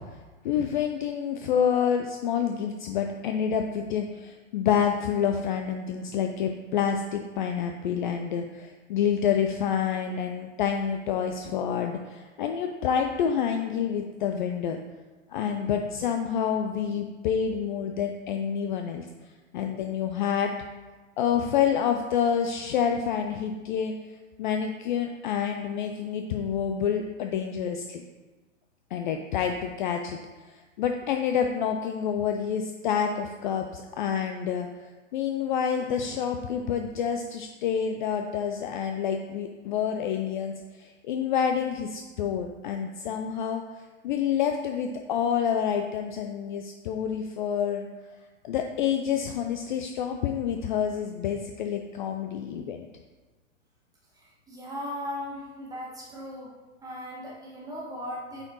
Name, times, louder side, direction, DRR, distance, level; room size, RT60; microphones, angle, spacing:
voice 1, 0.4-14.8 15.3-19.1 19.5-20.5 21.2-23.9 24.4-28.0 28.9-30.2 30.5-43.6 44.0-47.9 48.4-52.9, left 8 dB, 40° left, 5 dB, 0.4 m, -28 dB
voice 2, 54.2-58.4, left 1 dB, 10° right, -5 dB, 1.7 m, -38 dB
8.6 x 4.5 x 3.0 m, 1.3 s
hypercardioid pair, 115°, 38 cm